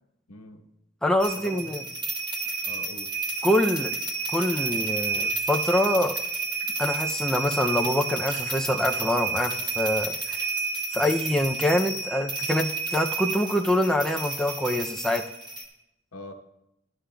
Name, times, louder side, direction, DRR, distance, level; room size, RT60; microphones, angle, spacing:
voice 1, 0.3-0.6 1.4-1.9 2.6-3.1 16.1-16.3, left 2 dB, 80° left, 4 dB, 1.0 m, -43 dB
voice 2, 1.0-1.8 3.4-3.9 4.3-6.2 6.8-10.4 10.9-15.3, left 1 dB, 5° left, 2 dB, 0.3 m, -25 dB
sound 1, 1.2-15.6, right 4 dB, 20° right, 1.1 m, -30 dB
sound 2, 3.7-4.7 4.9-5.0 5.3-5.8 6.1-6.3 6.6-6.8 7.7-8.4, right 2 dB, 80° right, 2.4 m, -50 dB
14.0 x 11.5 x 2.2 m, 0.86 s
head